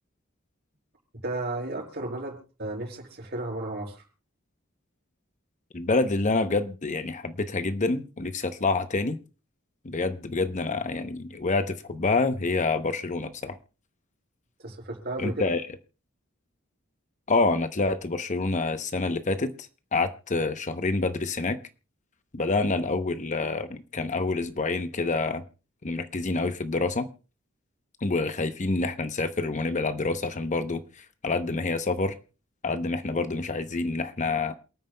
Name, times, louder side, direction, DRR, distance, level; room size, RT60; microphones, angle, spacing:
voice 1, 1.2-4.0 14.6-15.5, right 2 dB, 55° right, 1 dB, 5.1 m, -34 dB
voice 2, 5.7-9.2 9.8-13.6 15.2-15.6 17.3-21.6 22.3-25.4 25.8-27.1 28.0-32.2 32.6-34.5, left 3 dB, 35° left, 10 dB, 0.8 m, -27 dB
28.0 x 9.3 x 2.2 m, 0.33 s
head